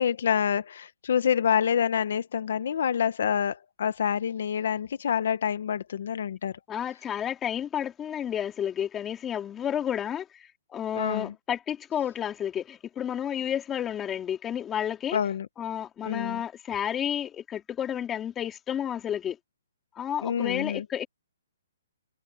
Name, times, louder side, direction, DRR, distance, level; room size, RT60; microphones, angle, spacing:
voice 1, 0.0-6.5 10.9-11.3 15.1-15.5 16.1-16.4 20.2-20.8, left 8 dB, 60° left, 0.9 m, -27 dB
voice 2, 6.7-15.2 15.6-19.4 19.9-21.1, left 9 dB, 15° left, 2.8 m, -31 dB
hypercardioid pair, 160°, 0 cm